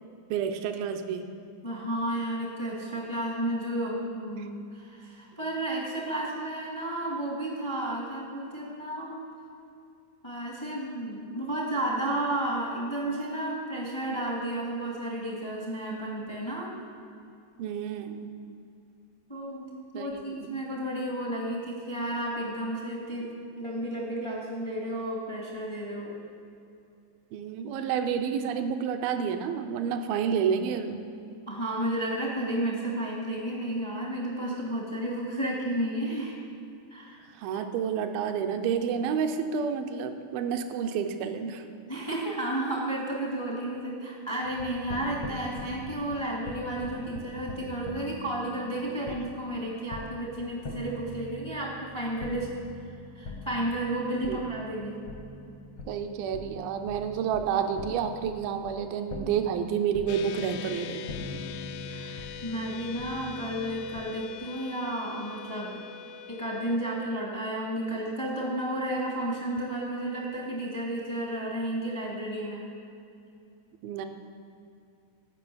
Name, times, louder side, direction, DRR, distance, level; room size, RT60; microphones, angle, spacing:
voice 1, 0.3-1.3 4.4-4.5 17.6-18.3 19.9-20.6 27.3-31.1 37.4-41.7 54.3-54.4 55.9-61.1 73.8-74.1, right 7 dB, 80° right, 7 dB, 2.2 m, -30 dB
voice 2, 1.6-9.2 10.2-16.7 19.3-19.7 19.9-23.3 23.6-26.1 31.5-36.4 36.9-37.2 41.9-52.5 53.1-55.0 61.8-65.8 66.3-72.7, right 1 dB, 30° left, -3 dB, 0.5 m, -32 dB
sound 1, 44.4-64.0, left 2 dB, 65° left, 1.4 m, -43 dB
sound 2, 60.1-66.8, left 8 dB, 85° left, 2.6 m, -42 dB
16.0 x 6.2 x 8.6 m, 2.6 s
omnidirectional pair, 5.0 m